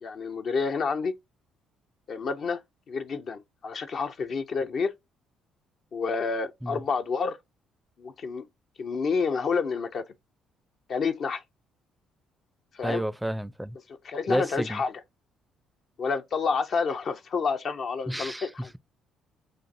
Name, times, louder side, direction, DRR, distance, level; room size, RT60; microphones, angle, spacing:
voice 1, 0.0-1.1 2.1-2.6 2.9-4.9 5.9-7.4 8.0-8.5 8.8-10.0 10.9-11.4 12.7-13.0 14.0-14.9 16.0-18.7, left 5 dB, 50° left, 0.6 m, -29 dB
voice 2, 12.8-13.8 14.3-14.8 18.1-18.5, right 1 dB, 5° right, 0.5 m, -30 dB
6.2 x 2.5 x 2.5 m
hypercardioid pair, 50°, 0 cm